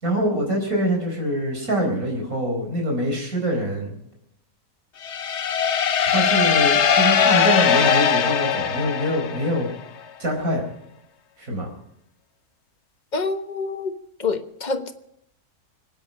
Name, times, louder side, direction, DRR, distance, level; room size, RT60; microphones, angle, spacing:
voice 1, 0.0-3.9 6.1-9.7 10.2-10.6 11.4-11.7, equal, 65° right, 5.0 m, -24 dB
sound 1, 5.0-9.7, left 7 dB, 55° left, 1.1 m, -20 dB
voice 2, 13.1-13.9 14.2-14.9, left 4 dB, 30° left, 1.2 m, -26 dB
25.0 x 9.5 x 5.4 m
omnidirectional pair, 1.6 m